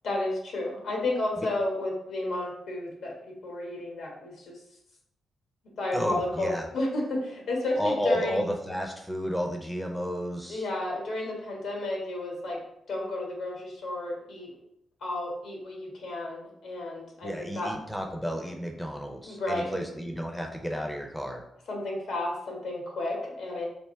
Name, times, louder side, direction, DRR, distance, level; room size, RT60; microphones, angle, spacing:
voice 1, 0.0-3.2 3.4-4.6 5.8-8.4 10.5-12.6 12.9-14.6 15.0-17.8 19.3-19.7 21.7-23.7, left 2 dB, 80° left, -1 dB, 1.2 m, -32 dB
voice 2, 5.9-6.7 7.8-10.7 17.2-21.4, equal, 5° left, 2 dB, 0.5 m, -32 dB
3.4 x 2.6 x 4.3 m, 0.78 s
cardioid pair, 110°, 0 cm